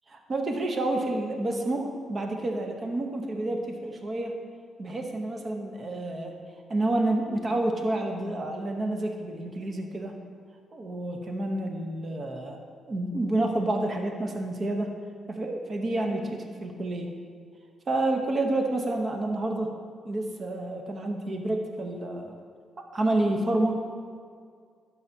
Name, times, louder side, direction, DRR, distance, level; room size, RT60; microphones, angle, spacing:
voice 1, 0.1-4.3 4.8-6.3 6.7-10.1 10.7-12.6 12.9-14.9 15.3-17.1 17.9-19.7 20.0-22.3 22.9-23.7, right 2 dB, 40° right, 3 dB, 0.9 m, -29 dB
12.0 x 5.6 x 2.8 m, 2.1 s
cardioid pair, 105°, 0 cm